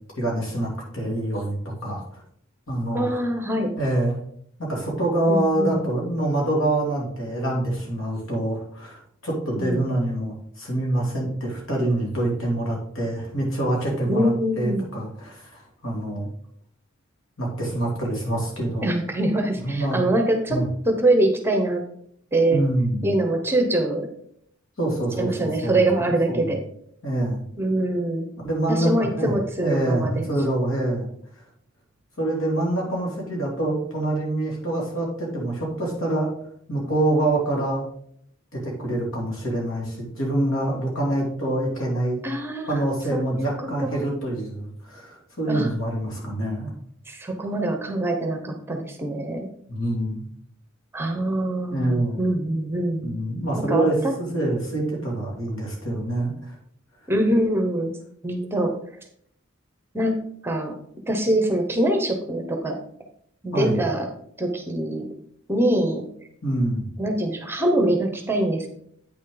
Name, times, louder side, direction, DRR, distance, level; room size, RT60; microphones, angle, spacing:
voice 1, 0.2-2.2 2.7-3.2 3.8-4.2 4.6-16.3 17.4-18.9 19.6-20.0 20.5-20.7 22.5-23.1 24.8-25.8 26.3-26.5 27.0-27.4 28.4-29.3 29.6-31.1 32.2-36.3 36.7-37.8 38.5-42.2 42.7-46.7 49.7-50.2 51.7-52.2 53.0-56.5 63.5-63.8 66.4-66.9, right 1 dB, 75° left, -2 dB, 3.0 m, -26 dB
voice 2, 2.9-3.7 5.3-5.8 9.6-9.9 14.1-14.9 18.8-21.8 22.3-22.6 23.0-24.1 25.2-26.6 27.6-28.3 28.7-30.3 42.2-42.8 43.1-44.1 45.5-45.7 47.1-49.5 50.9-53.2 53.6-54.1 57.1-57.9 58.2-58.8 59.9-60.7 61.1-62.8 63.4-64.1 64.4-65.1 65.5-66.0 67.0-68.7, right 1 dB, 10° right, 4 dB, 1.0 m, -24 dB
8.7 x 6.2 x 3.9 m, 0.67 s
head